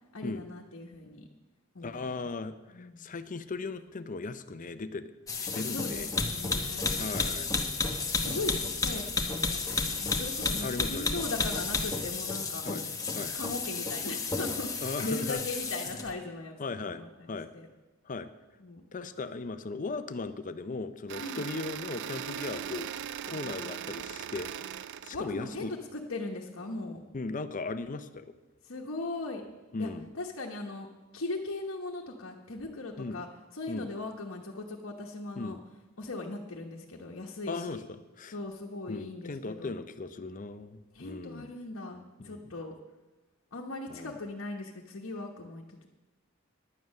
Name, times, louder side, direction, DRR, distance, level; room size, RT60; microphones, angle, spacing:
voice 1, 0.1-1.3 1.7-2.3 2.7-3.0 5.7-6.9 8.2-12.6 13.3-16.6 16.8-17.7 18.6-18.8 21.2-21.5 25.1-27.0 28.7-29.5 29.8-30.9 31.1-33.3 33.5-35.6 36.0-37.8 38.3-39.7 40.9-42.7 43.5-45.6, left 2 dB, 70° left, -2 dB, 1.1 m, -39 dB
voice 2, 1.8-5.1 5.4-6.1 7.0-7.5 10.6-11.1 11.4-11.5 12.6-12.8 13.1-13.3 14.8-15.4 16.6-17.0 17.3-17.5 18.1-18.3 18.9-22.9 23.3-24.5 25.0-25.7 27.1-28.3 29.7-30.1 33.0-33.2 33.7-33.9 35.4-35.6 37.5-38.3 38.9-41.6 42.2-42.5 43.9-44.2, left 3 dB, 40° left, 12 dB, 0.6 m, -37 dB
sound 1, 5.3-16.1, left 4 dB, 15° left, 1.1 m, -32 dB
sound 2, 21.1-25.2, right 9 dB, 55° right, 0.4 m, -39 dB
11.0 x 9.3 x 6.4 m, 1.2 s
head